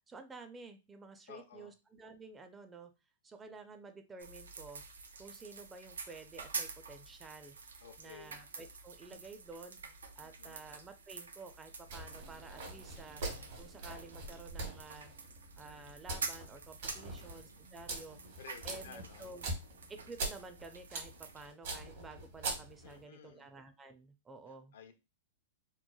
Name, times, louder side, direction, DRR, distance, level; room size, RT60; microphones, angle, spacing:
voice 1, 0.1-2.9 3.2-4.8 5.2-7.6 8.0-13.2 13.6-15.1 15.5-18.2 18.6-19.5 19.9-24.7, right 3 dB, 15° right, 0.4 m, -52 dB
voice 2, 1.3-1.7 7.8-8.4 10.2-10.6 17.0-17.6 18.4-19.3 22.8-23.5 24.7-24.9, left 7 dB, 70° left, 0.5 m, -54 dB
sound 1, 4.2-21.5, right 4 dB, 90° right, 0.4 m, -48 dB
sound 2, 11.8-23.0, right 2 dB, 65° right, 1.0 m, -44 dB
sound 3, 12.0-16.2, right 4 dB, 50° right, 0.7 m, -61 dB
3.0 x 2.1 x 2.3 m
hypercardioid pair, 115°, 0 cm